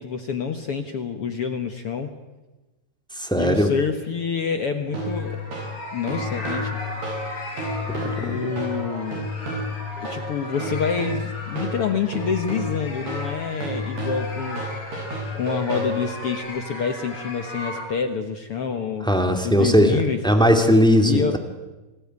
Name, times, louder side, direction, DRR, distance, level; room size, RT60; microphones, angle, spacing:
voice 1, 0.0-2.2 3.4-5.4 5.9-6.8 8.2-9.3 10.0-14.6 15.3-19.1 19.4-20.2 21.0-21.4, left 6 dB, 70° left, 7 dB, 1.3 m, -27 dB
voice 2, 3.1-3.7 7.9-8.4 19.0-21.4, equal, ahead, 5 dB, 1.5 m, -19 dB
sound 1, 4.9-17.8, left 1 dB, 35° left, 6.1 m, -36 dB
sound 2, 4.9-16.4, left 1 dB, 90° right, 10.0 m, -31 dB
29.0 x 19.5 x 9.6 m, 1.1 s
omnidirectional pair, 4.6 m